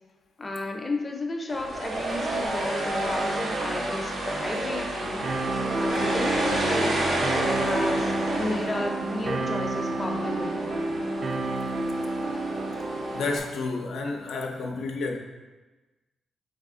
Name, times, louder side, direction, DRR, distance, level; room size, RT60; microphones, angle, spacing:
voice 1, 0.4-7.0 7.5-10.9, left 2 dB, 25° left, 1 dB, 0.5 m, -33 dB
sound 1, 1.5-13.4, right 1 dB, 80° right, 0.8 m, -30 dB
sound 2, 5.2-13.2, right 2 dB, 50° right, 0.5 m, -30 dB
voice 2, 13.1-15.2, left 3 dB, 85° left, 1 dB, 0.5 m, -30 dB
4.0 x 3.3 x 3.7 m, 1.2 s
cardioid pair, 100°, 0 cm